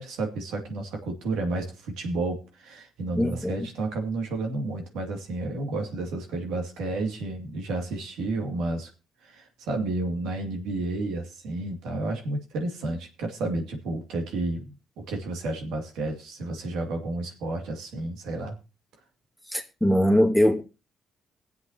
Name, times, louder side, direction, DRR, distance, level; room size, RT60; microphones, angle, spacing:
voice 1, 0.0-8.9 9.2-18.6, right 2 dB, 90° right, 2.5 m, -31 dB
voice 2, 3.2-3.7 19.5-20.6, equal, ahead, 2.2 m, -22 dB
23.5 x 7.8 x 2.9 m
cardioid pair, 90°, 0 cm